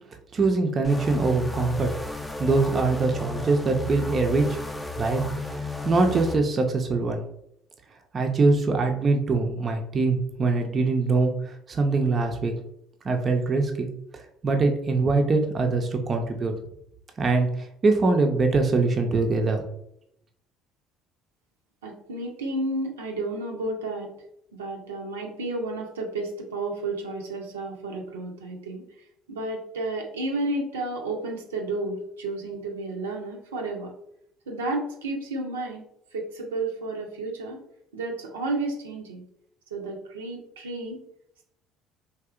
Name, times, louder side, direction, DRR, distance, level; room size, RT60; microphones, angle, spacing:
voice 1, 0.3-1.9 2.4-4.6 5.0-5.2 5.5-7.2 8.1-12.5 13.0-13.9 14.4-16.5 17.2-19.6, right 3 dB, 35° right, 3 dB, 0.5 m, -23 dB
sound 1, 0.8-6.4, left 2 dB, 10° left, 0.5 m, -33 dB
voice 2, 21.8-24.1 24.5-28.8 29.3-33.9 34.5-35.8 36.1-37.6 37.9-39.2 39.7-41.1, right 2 dB, 80° right, 0 dB, 0.6 m, -32 dB
3.4 x 2.7 x 2.4 m, 0.73 s
figure-of-eight pair, 60°, 0 cm